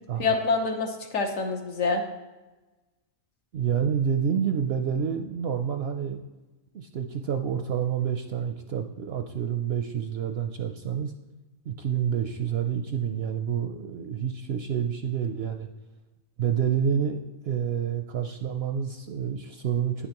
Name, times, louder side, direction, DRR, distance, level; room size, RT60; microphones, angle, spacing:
voice 1, 0.0-2.0, left 4 dB, 70° left, 2 dB, 1.4 m, -27 dB
voice 2, 3.5-6.2 6.7-11.1 11.7-15.7 16.4-20.1, right 8 dB, 65° right, 6 dB, 0.6 m, -28 dB
9.3 x 6.9 x 2.9 m, 1.1 s
omnidirectional pair, 1.4 m